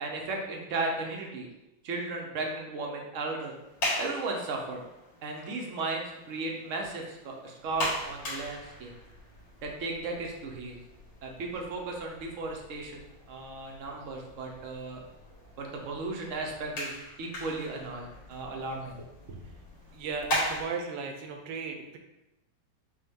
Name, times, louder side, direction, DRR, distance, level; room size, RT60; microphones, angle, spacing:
voice 1, 0.0-1.5 1.8-3.5 4.0-4.8 5.2-8.9 9.6-10.8 11.2-15.0 15.6-16.9 17.2-19.4, right 3 dB, 60° right, 1 dB, 0.8 m, -35 dB
sound 1, 3.5-20.6, equal, 70° left, 2.5 m, -39 dB
voice 2, 19.9-22.0, right 4 dB, 75° right, 4 dB, 1.3 m, -36 dB
6.6 x 2.3 x 3.5 m, 0.93 s
omnidirectional pair, 2.1 m